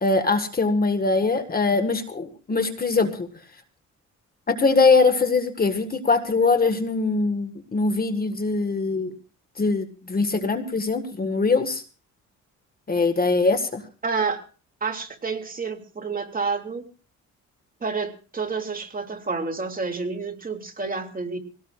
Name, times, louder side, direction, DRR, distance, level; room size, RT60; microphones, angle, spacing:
voice 1, 0.0-3.3 4.5-9.1 9.6-11.8 12.9-13.8, left 3 dB, 30° left, 9 dB, 1.6 m, -22 dB
voice 2, 14.0-14.4 14.8-16.9 17.8-21.4, right 4 dB, 30° right, 5 dB, 2.6 m, -29 dB
24.0 x 18.0 x 2.5 m, 0.34 s
cardioid pair, 90°, 30 cm